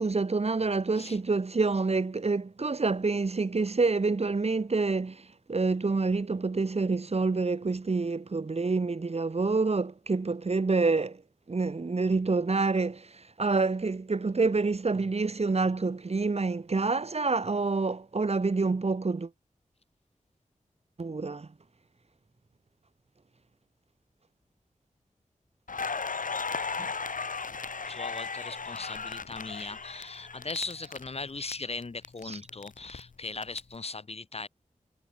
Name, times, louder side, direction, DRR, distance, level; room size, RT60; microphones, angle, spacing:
voice 1, 0.0-11.2 11.5-19.3 21.0-21.5 26.8-26.9 32.3-32.4, right 3 dB, 50° right, 2.1 m, -27 dB
Crackle, 25.7-31.5 31.8-33.6, left 5 dB, 80° left, 4.4 m, -36 dB
voice 2, 27.9-34.5, left 3 dB, 50° left, 2.1 m, -39 dB
wide cardioid pair, 85°, 14 cm